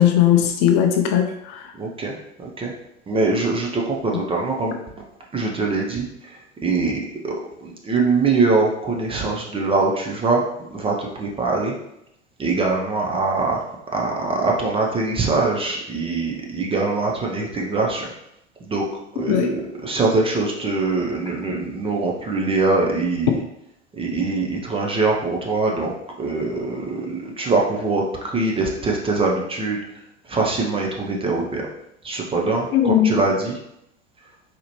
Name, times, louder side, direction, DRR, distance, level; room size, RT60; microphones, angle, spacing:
voice 1, 0.0-1.7 19.3-19.5 32.7-33.2, left 10 dB, 45° left, 5 dB, 0.5 m, -18 dB
voice 2, 1.8-2.7 3.1-4.7 5.3-7.3 7.6-10.4 10.7-11.7 12.4-18.1 18.7-18.9 19.1-23.4 23.9-25.9 26.2-30.0 30.3-31.7 32.0-33.6, right 3 dB, 15° right, -1 dB, 0.6 m, -23 dB
4.1 x 2.8 x 3.0 m, 0.79 s
figure-of-eight pair, 80°, 36 cm